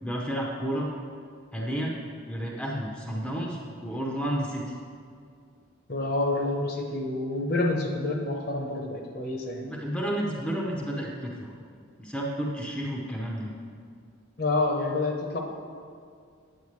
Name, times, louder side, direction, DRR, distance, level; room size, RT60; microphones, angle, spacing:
voice 1, 0.0-0.9 1.5-1.9 2.3-4.6 9.6-11.5 12.0-13.5, equal, 5° left, -2 dB, 0.7 m, -31 dB
voice 2, 5.9-9.7 14.4-15.4, left 2 dB, 50° left, 0 dB, 0.9 m, -28 dB
8.9 x 8.6 x 3.2 m, 2.2 s
head